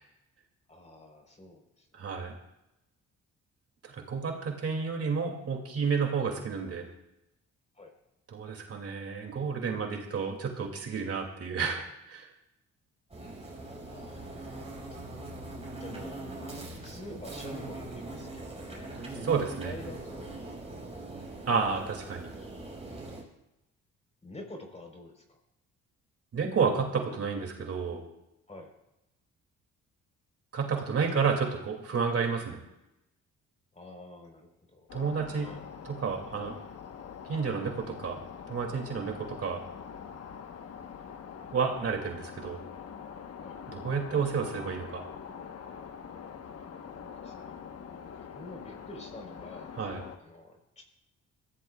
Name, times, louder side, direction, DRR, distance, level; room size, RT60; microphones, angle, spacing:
voice 1, 0.7-2.0 7.7-7.9 13.9-15.2 15.8-16.6 16.8-19.1 19.6-21.6 24.2-25.4 28.5-28.7 33.7-34.9 35.4-35.6 36.4-36.6 43.4-43.6 47.0-47.8 48.3-50.9, left 1 dB, 20° left, 3 dB, 4.1 m, -48 dB
voice 2, 1.9-2.3 3.8-6.9 8.3-12.3 19.1-19.7 21.5-22.3 26.3-28.1 30.5-32.6 34.9-35.5 35.8-36.6 37.2-39.6 41.5-42.6 43.7-45.0 49.8-50.0, right 5 dB, 50° right, 2 dB, 2.5 m, -31 dB
sound 1, 13.1-23.2, right 2 dB, 20° right, 5.3 m, -42 dB
sound 2, 34.9-50.2, left 7 dB, 55° left, 1.2 m, -44 dB
21.5 x 15.5 x 2.4 m, 0.89 s
cardioid pair, 90°, 30 cm